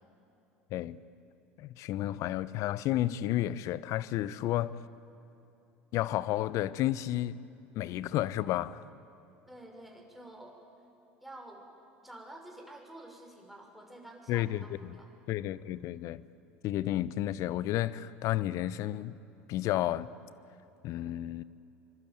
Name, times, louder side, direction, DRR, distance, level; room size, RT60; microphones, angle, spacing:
voice 1, 1.6-4.8 5.9-7.5 7.7-8.8 14.3-15.0 15.3-16.2 16.6-19.2 19.5-20.1 20.8-21.4, left 14 dB, 55° left, 0.9 m, -31 dB
voice 2, 9.5-10.6 11.2-11.6 12.0-15.1, right 1 dB, ahead, 6.2 m, -49 dB
25.5 x 25.0 x 9.2 m
hypercardioid pair, 75°, 7 cm